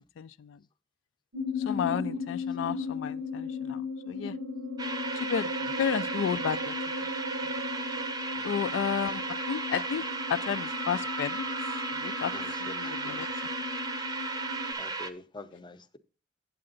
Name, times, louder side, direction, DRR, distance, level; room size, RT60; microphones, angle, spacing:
voice 1, 0.2-0.6 1.6-3.8 4.1-4.4 5.1-5.5 5.8-6.7 8.4-11.5 12.0-13.5, left 8 dB, 70° left, 0.3 m, -32 dB
sound 1, 1.3-14.7, left 3 dB, 75° right, 0.8 m, -36 dB
sound 2, 4.8-15.1, right 3 dB, 20° right, 0.6 m, -35 dB
voice 2, 8.4-8.7 12.3-13.3 14.8-16.0, left 2 dB, 25° left, 0.6 m, -47 dB
8.6 x 7.7 x 3.8 m
head